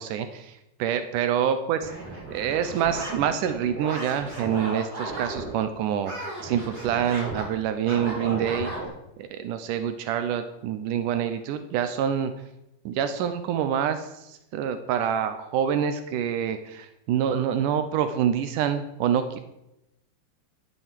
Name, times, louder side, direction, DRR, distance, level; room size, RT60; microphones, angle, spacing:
voice 1, 0.0-1.9 2.3-8.7 9.2-12.3 12.9-19.4, right 9 dB, 90° right, 10 dB, 1.8 m, -26 dB
sound 1, 1.8-5.5 6.0-8.8, right 2 dB, 20° right, 4.4 m, -35 dB
12.5 x 8.3 x 7.6 m, 0.89 s
omnidirectional pair, 4.8 m